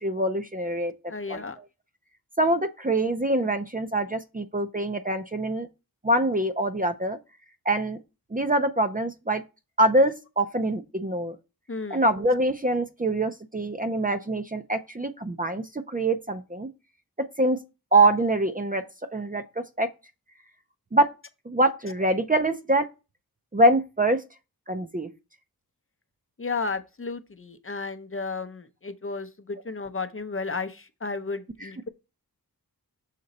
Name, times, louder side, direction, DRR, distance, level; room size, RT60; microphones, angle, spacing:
voice 1, 0.0-0.9 1.3-1.4 2.4-5.7 6.0-7.2 7.7-8.0 8.3-9.4 9.8-11.4 11.9-16.7 17.4-17.6 17.9-18.8 19.1-19.9 20.9-21.1 21.5-22.9 23.5-24.2 24.7-25.1 31.6-31.7, right 1 dB, 25° right, 0.5 m, -24 dB
voice 2, 1.1-1.6 11.7-12.0 26.4-31.9, left 4 dB, 35° left, 0.6 m, -33 dB
6.7 x 3.8 x 4.1 m
wide cardioid pair, 85°, 37 cm